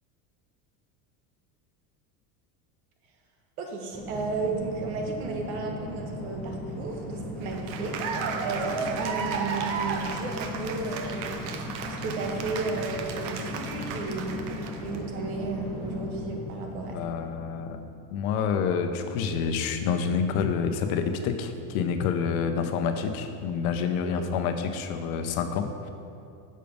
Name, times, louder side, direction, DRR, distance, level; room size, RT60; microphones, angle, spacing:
voice 1, 3.6-11.3 12.0-17.0 24.1-24.3, right 4 dB, 85° right, 2 dB, 1.4 m, -34 dB
sound 1, 3.9-18.3, left 2 dB, ahead, 1.1 m, -37 dB
Cheering / Applause, 7.4-15.0, right 5 dB, 55° right, 0.8 m, -34 dB
voice 2, 16.7-17.8 18.1-25.7, left 6 dB, 75° left, 7 dB, 0.8 m, -28 dB
6.9 x 6.5 x 5.2 m, 2.6 s
cardioid pair, 165°, 42 cm